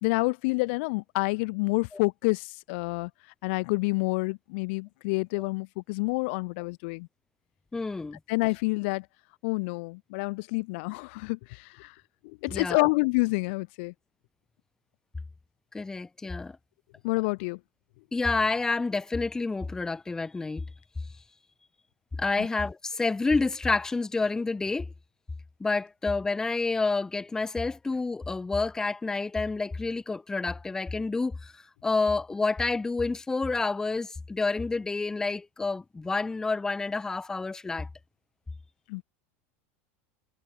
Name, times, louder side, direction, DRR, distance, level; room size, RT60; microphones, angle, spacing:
voice 1, 0.0-3.1 3.4-7.1 8.3-9.1 9.4-11.9 12.2-13.9 17.0-17.6 22.4-22.5 38.9-39.0, left 28 dB, 65° left, 0.6 m, -28 dB
voice 2, 7.7-8.2 12.5-12.9 15.7-16.6 18.1-20.6 22.2-24.9 25.6-31.5 31.8-37.9, left 3 dB, 10° left, 0.3 m, -29 dB
supercardioid pair, 135°, 7 cm